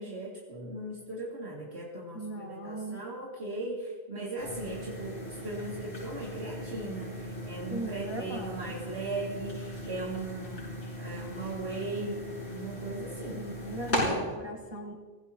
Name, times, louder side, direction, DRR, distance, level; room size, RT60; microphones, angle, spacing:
voice 1, 0.0-13.4 14.0-14.2, right 2 dB, 80° right, -6 dB, 2.9 m, -38 dB
voice 2, 2.1-3.0 7.7-8.7 13.4-14.9, right 1 dB, 25° right, -4 dB, 1.7 m, -38 dB
sound 1, 4.4-14.0, left 1 dB, 90° left, 6.8 m, -38 dB
25.0 x 15.5 x 3.0 m, 1.5 s
omnidirectional pair, 1.1 m